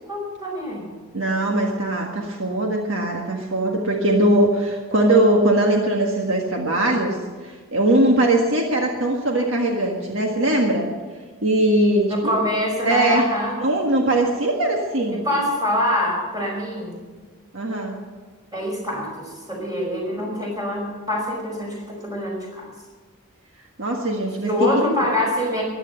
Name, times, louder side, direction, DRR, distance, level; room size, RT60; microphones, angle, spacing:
voice 1, 0.1-0.9 12.1-13.6 15.1-16.9 18.5-22.7 24.4-25.6, left 1 dB, 15° right, -1 dB, 5.1 m, -25 dB
voice 2, 1.1-7.2 7.4-10.9 11.4-12.4 12.8-13.3 13.6-15.2 17.5-18.0 23.8-24.5, right 1 dB, 60° right, 1 dB, 1.7 m, -20 dB
15.0 x 11.0 x 7.8 m, 1.4 s
head